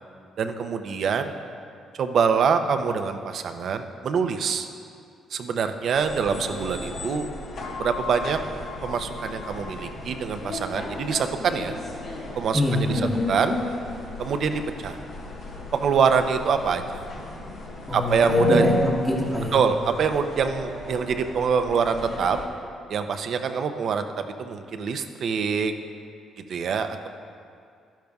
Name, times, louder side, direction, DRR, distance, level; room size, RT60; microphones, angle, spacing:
voice 1, 0.4-1.3 2.0-4.7 5.3-7.3 7.8-8.4 8.8-11.8 12.3-13.0 13.3-13.6 14.2-15.0 15.7-17.0 17.9-18.6 19.5-22.4 22.9-25.7 26.5-27.1, right 6 dB, 60° right, 8 dB, 0.6 m, -25 dB
sound 1, 5.9-22.5, left 1 dB, 70° left, 1.5 m, -32 dB
voice 2, 12.5-13.2 17.9-19.6, left 1 dB, ahead, -5 dB, 1.1 m, -25 dB
12.0 x 10.5 x 2.3 m, 2.4 s
cardioid pair, 90°, 0 cm